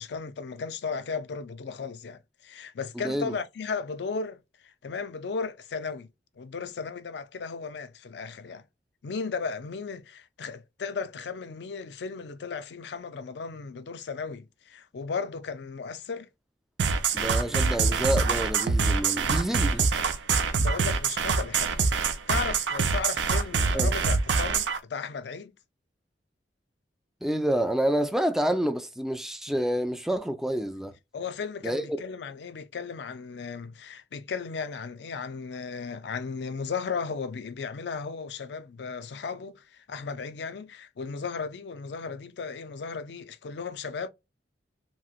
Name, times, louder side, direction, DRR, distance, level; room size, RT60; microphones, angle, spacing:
voice 1, 0.0-6.1 6.4-8.6 9.0-16.3 19.9-20.0 20.4-25.5 31.1-44.1, left 5 dB, 70° left, 0.4 m, -35 dB
voice 2, 3.0-3.3 17.1-19.9 23.7-23.9 27.2-30.9 31.6-32.0, right 1 dB, ahead, 0.3 m, -28 dB
sound 1, 16.8-24.8, right 5 dB, 90° right, 0.6 m, -24 dB
3.0 x 2.8 x 2.3 m
head